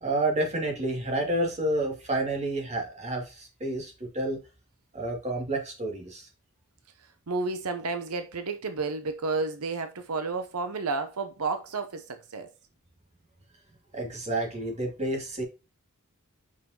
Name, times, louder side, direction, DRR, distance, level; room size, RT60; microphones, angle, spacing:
voice 1, 0.0-4.4 4.9-6.3 13.9-15.4, right 1 dB, 30° right, 2.5 m, -29 dB
voice 2, 7.3-12.5, right 4 dB, 90° right, 0.8 m, -31 dB
7.5 x 5.5 x 2.9 m
head